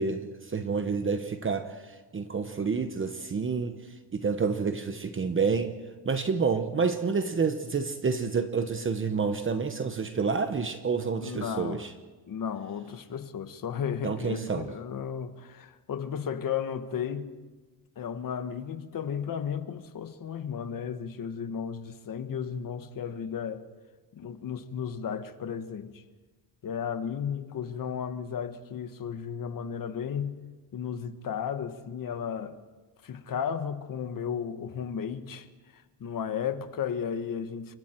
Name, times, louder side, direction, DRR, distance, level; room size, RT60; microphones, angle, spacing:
voice 1, 0.0-5.8 6.0-11.9 14.0-14.7, right 5 dB, 30° right, 1.0 m, -29 dB
voice 2, 11.2-11.8 12.3-17.3 17.9-23.6 24.1-26.0 26.6-30.4 30.7-32.6 33.0-35.5 35.7-37.7, left 7 dB, 55° left, 1.5 m, -34 dB
28.5 x 24.5 x 4.6 m
wide cardioid pair, 155°, 41 cm